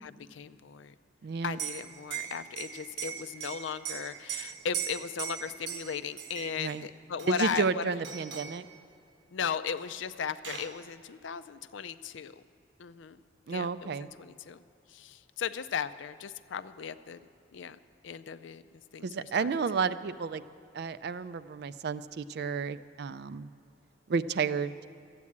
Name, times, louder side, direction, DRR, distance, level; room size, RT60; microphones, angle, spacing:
voice 1, 0.0-0.9 1.4-8.0 9.3-12.4 12.8-13.2 13.5-17.2 17.5-18.6 18.9-19.6, left 7 dB, 75° left, 13 dB, 0.4 m, -37 dB
voice 2, 1.2-1.6 6.6-6.8 7.3-8.7 13.5-14.1 19.0-20.4 20.7-23.5 24.1-24.7, right 5 dB, 55° right, 13 dB, 0.4 m, -31 dB
Liquid, 1.5-6.8 7.2-7.8 8.0-8.6 9.8-9.9 10.2-10.8, right 8 dB, 70° right, 0.9 m, -39 dB
13.5 x 8.4 x 8.6 m, 2.6 s
head